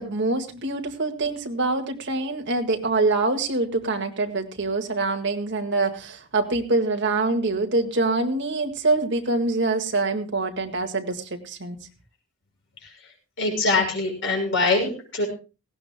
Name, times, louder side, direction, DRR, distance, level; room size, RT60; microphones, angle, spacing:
voice 1, 0.0-11.8, right 3 dB, 55° right, 4 dB, 1.8 m, -25 dB
voice 2, 13.4-15.2, left 3 dB, 60° left, 2 dB, 6.3 m, -23 dB
19.0 x 17.0 x 2.2 m, 0.32 s
head